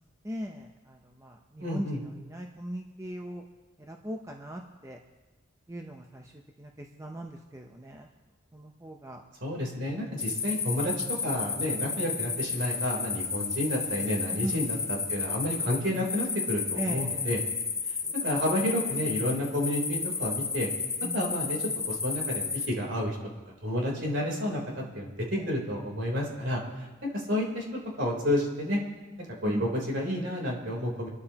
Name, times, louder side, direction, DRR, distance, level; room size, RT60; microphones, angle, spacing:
voice 1, 0.2-0.7 1.2-1.3 1.7-1.9 2.3-3.4 3.9-5.0 5.7-6.2 6.6-8.1 8.5-9.2 14.4-14.6 16.8-17.3 21.0-21.2 25.4-25.5 29.5-29.7, right 1 dB, 15° right, 2 dB, 0.7 m, -38 dB
voice 2, 1.6-2.0 9.4-17.4 18.2-20.7 21.1-21.6 21.9-23.2 23.6-25.1 25.5-26.6 27.1-27.6 28.0-28.8 29.4-31.1, left 1 dB, 60° right, -2 dB, 3.6 m, -30 dB
sound 1, 10.2-22.7, left 5 dB, 15° left, 1.0 m, -32 dB
26.5 x 13.0 x 3.0 m, 1.2 s
head